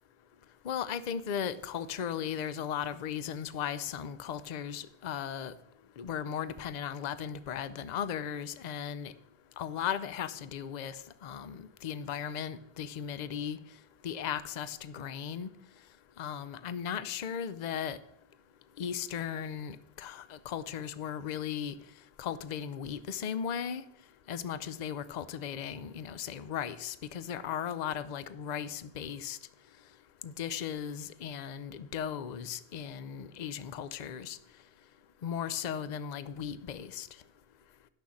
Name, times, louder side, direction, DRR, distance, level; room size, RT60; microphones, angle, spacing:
voice 1, 0.6-5.5 6.0-9.1 9.6-13.6 14.0-15.5 16.2-18.0 18.8-21.7 22.2-23.8 24.3-29.4 30.2-34.4 35.2-37.1, left 8 dB, 50° left, 15 dB, 0.6 m, -36 dB
11.5 x 6.3 x 7.1 m, 0.82 s
omnidirectional pair, 1.1 m